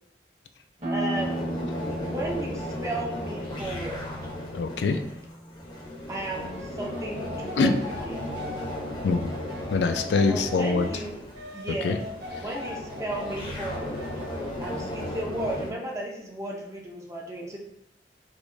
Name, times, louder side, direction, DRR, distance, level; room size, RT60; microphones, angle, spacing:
sound 1, 0.8-6.2, right 1 dB, 40° right, 1.0 m, -35 dB
voice 1, 0.9-1.4 2.0-4.1 6.1-8.2 10.3-11.2 11.5-12.0 12.4-14.1 14.6-17.6, right 1 dB, 15° right, -1 dB, 0.5 m, -34 dB
sound 2, 1.1-15.7, left 1 dB, 25° left, 0.6 m, -36 dB
voice 2, 4.5-5.0 7.6-7.7 9.0-9.3 9.7-10.9 11.8-12.0, left 4 dB, 75° left, 7 dB, 0.3 m, -23 dB
sound 3, 6.4-10.9 11.3-14.5, left 2 dB, 75° right, 0.7 m, -41 dB
4.6 x 2.2 x 2.6 m, 0.79 s
head